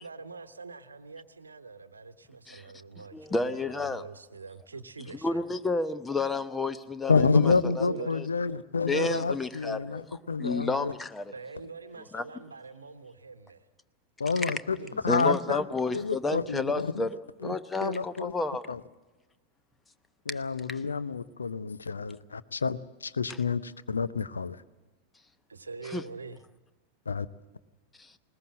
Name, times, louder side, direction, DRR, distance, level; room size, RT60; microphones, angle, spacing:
voice 1, 0.0-5.4 7.9-8.6 11.3-13.7 14.8-15.1 25.5-26.4, right 4 dB, 75° right, 1.0 m, -44 dB
voice 2, 3.1-4.0 5.2-7.9 8.1-8.3 8.9-11.3 12.1-12.2 14.4-14.5 14.9-18.8 20.3-20.4 20.7-20.8 25.9-26.0 28.0-28.1, left 3 dB, 10° left, 0.9 m, -31 dB
voice 3, 7.1-10.9 14.2-14.8 15.0-15.6 15.9-17.1 17.4-17.5 17.8-18.3 18.7-18.8 20.3-24.6 27.1-27.3, left 4 dB, 75° left, 0.7 m, -28 dB
20.5 x 20.0 x 7.6 m
figure-of-eight pair, 90°, 0 cm